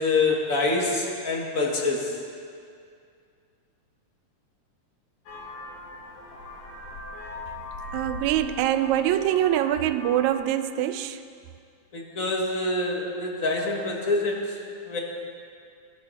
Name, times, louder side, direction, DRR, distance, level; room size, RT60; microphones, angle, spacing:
voice 1, 0.0-2.2 11.9-14.6 14.8-15.0, left 3 dB, 35° left, -1 dB, 1.7 m, -26 dB
Vehicle horn car horn honking, 5.3-10.4, left 2 dB, 70° left, 3.3 m, -40 dB
voice 2, 7.9-11.2, right 12 dB, 80° right, 10 dB, 2.0 m, -24 dB
24.5 x 11.0 x 4.2 m, 2.3 s
omnidirectional pair, 3.5 m